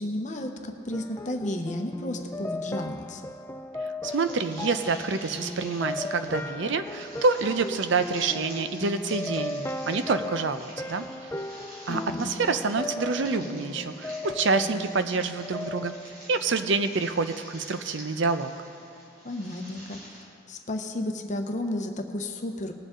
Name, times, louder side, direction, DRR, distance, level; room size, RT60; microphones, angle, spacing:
voice 1, 0.0-3.2 11.9-12.3 19.2-22.7, left 1 dB, 35° left, 4 dB, 0.8 m, -33 dB
sound 1, 0.9-17.0, left 2 dB, 10° left, 0.3 m, -36 dB
voice 2, 4.0-11.1 11.9-15.9 16.3-18.5, right 4 dB, 65° right, 10 dB, 0.6 m, -27 dB
sound 2, 4.1-20.2, equal, 50° right, 3.3 m, -47 dB
19.5 x 7.6 x 3.7 m, 2.6 s
head